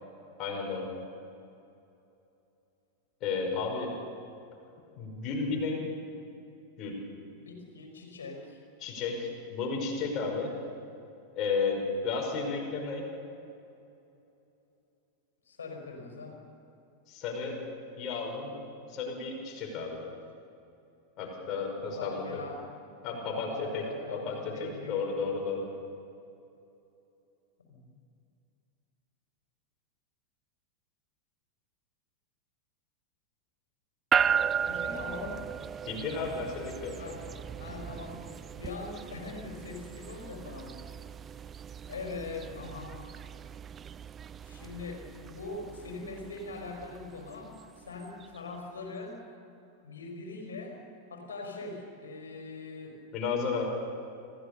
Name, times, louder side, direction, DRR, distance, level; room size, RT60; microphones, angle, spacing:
voice 1, 0.4-0.9 3.2-3.9 5.0-5.8 6.8-7.0 8.8-10.5 11.3-13.0 17.1-17.6 18.0-18.5 18.9-20.0 21.2-22.2 23.0-23.8 24.1-25.7 35.8-37.0 53.1-53.6, left 4 dB, 35° left, 1 dB, 5.7 m, -33 dB
voice 2, 7.4-8.6 15.4-16.4 22.0-22.6 23.3-25.0 27.7-27.9 34.6-35.4 37.0-37.2 37.6-38.2 38.6-41.0 41.9-42.9 44.4-49.2 49.8-50.8 51.1-53.0, left 3 dB, 70° left, 3 dB, 4.6 m, -42 dB
sound 1, 34.1-48.4, right 8 dB, 25° right, 0.4 m, -36 dB
26.5 x 16.5 x 6.9 m, 2.7 s
figure-of-eight pair, 90°, 0 cm